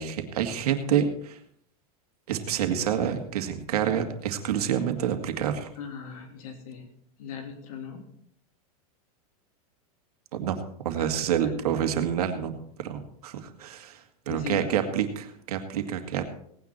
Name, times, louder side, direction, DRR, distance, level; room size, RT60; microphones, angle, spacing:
voice 1, 0.0-1.4 2.3-5.7 10.4-10.6 10.8-16.2, right 9 dB, 85° right, 6 dB, 2.1 m, -28 dB
voice 2, 5.8-6.9 7.2-8.1 11.0-11.1 11.4-11.9 14.3-14.7, left 7 dB, 65° left, 3 dB, 3.3 m, -39 dB
18.0 x 9.6 x 4.4 m, 0.68 s
supercardioid pair, 150°, 19 cm